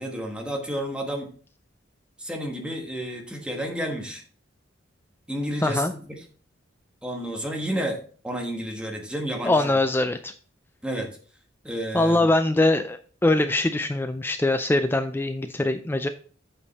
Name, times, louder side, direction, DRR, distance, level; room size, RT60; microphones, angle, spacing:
voice 1, 0.0-1.3 2.2-4.2 5.3-6.0 7.0-8.0 8.2-9.7 10.8-11.2 11.6-12.2, right 1 dB, 5° right, 1 dB, 1.3 m, -31 dB
voice 2, 5.6-5.9 9.4-10.3 11.9-16.1, left 2 dB, 10° left, 9 dB, 0.3 m, -22 dB
8.3 x 5.2 x 4.1 m, 0.41 s
head